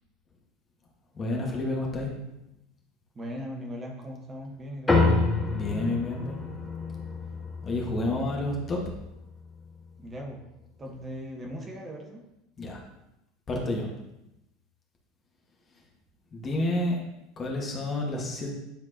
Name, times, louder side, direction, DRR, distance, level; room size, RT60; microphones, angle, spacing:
voice 1, 1.1-2.1 5.5-6.4 7.6-8.8 12.6-12.8 13.5-13.9 16.3-17.0 17.4-18.5, left 2 dB, 30° left, -1 dB, 1.6 m, -29 dB
voice 2, 3.1-5.0 10.0-10.4 10.8-12.2, equal, 20° right, 0 dB, 1.3 m, -38 dB
sound 1, 4.9-9.6, left 3 dB, 10° left, 1.6 m, -28 dB
10.5 x 4.4 x 2.9 m, 0.88 s
figure-of-eight pair, 75°, 0 cm